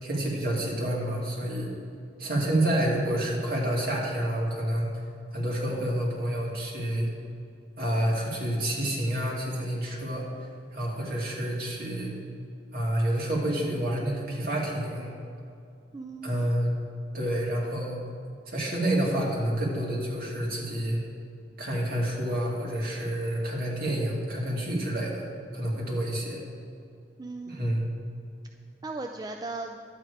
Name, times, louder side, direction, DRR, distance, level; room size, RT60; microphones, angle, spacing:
voice 1, 0.0-1.7 2.2-4.9 5.3-7.1 7.8-10.3 10.7-12.1 12.7-15.1 16.2-16.7 17.1-18.0 18.5-21.0 21.6-25.2 25.5-26.4 27.5-27.9, right 1 dB, 55° right, -4 dB, 2.4 m, -28 dB
voice 2, 15.9-16.5 27.2-27.8 28.8-29.8, right 3 dB, 20° right, 4 dB, 0.3 m, -37 dB
11.0 x 8.4 x 4.8 m, 2.4 s
head